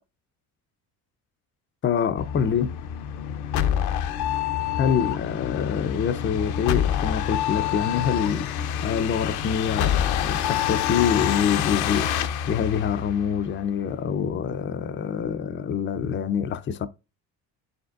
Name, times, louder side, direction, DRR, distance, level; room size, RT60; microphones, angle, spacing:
voice 1, 1.8-2.8 4.8-8.5 8.8-16.9, left 7 dB, 30° left, 0.5 m, -26 dB
sound 1, 2.2-13.6, left 10 dB, 80° left, 0.8 m, -27 dB
10.5 x 5.2 x 2.4 m
supercardioid pair, 85°, 38 cm